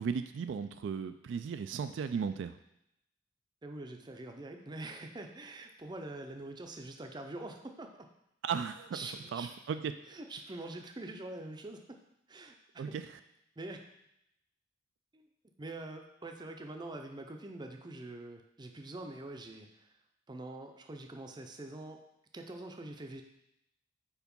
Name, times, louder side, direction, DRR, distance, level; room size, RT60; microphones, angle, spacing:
voice 1, 0.0-2.6 8.4-9.0 9.3-9.9 12.8-13.0, right 6 dB, 70° right, 10 dB, 0.3 m, -35 dB
voice 2, 3.6-8.1 8.5-9.6 10.1-12.0 12.3-12.8 13.6-13.8 15.1-15.3 15.6-20.0 20.3-22.1 22.3-23.2, right 2 dB, 25° right, 4 dB, 0.5 m, -45 dB
4.8 x 4.6 x 5.2 m, 0.80 s
head